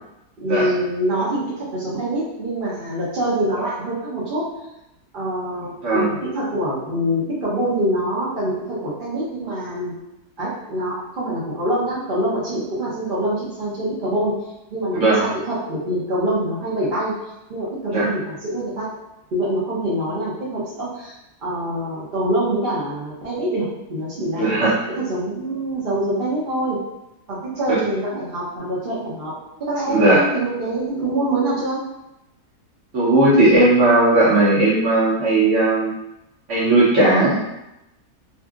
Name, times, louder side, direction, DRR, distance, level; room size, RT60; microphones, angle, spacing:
voice 1, 0.4-4.5 5.1-9.9 10.4-14.3 14.7-17.1 17.5-18.9 19.3-21.1 21.4-24.5 25.0-26.8 27.3-29.3 29.6-31.8, right 1 dB, 80° right, -8 dB, 0.4 m, -25 dB
voice 2, 24.4-24.7 27.7-27.8 29.9-30.2 32.9-35.9 36.5-37.4, right 2 dB, 55° right, -7 dB, 0.9 m, -16 dB
2.6 x 2.6 x 2.3 m, 0.89 s
omnidirectional pair, 1.8 m